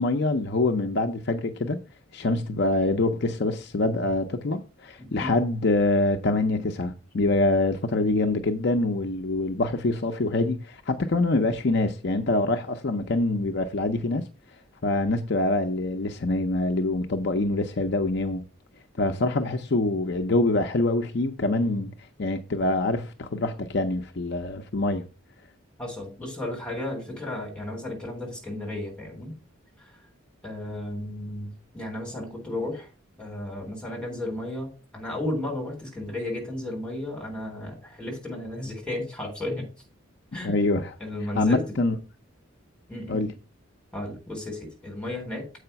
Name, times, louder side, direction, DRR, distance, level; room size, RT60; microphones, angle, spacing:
voice 1, 0.0-1.8 2.1-14.3 14.8-18.4 19.0-21.9 22.2-25.1 40.4-40.9 41.2-42.0 43.1-43.3, left 2 dB, 55° left, 0.6 m, -25 dB
voice 2, 5.0-5.3 25.8-29.3 30.4-32.9 33.2-39.7 40.3-40.5 41.0-41.6 42.9-43.3 43.9-45.4, left 1 dB, 5° left, 3.8 m, -33 dB
7.8 x 4.9 x 5.6 m
head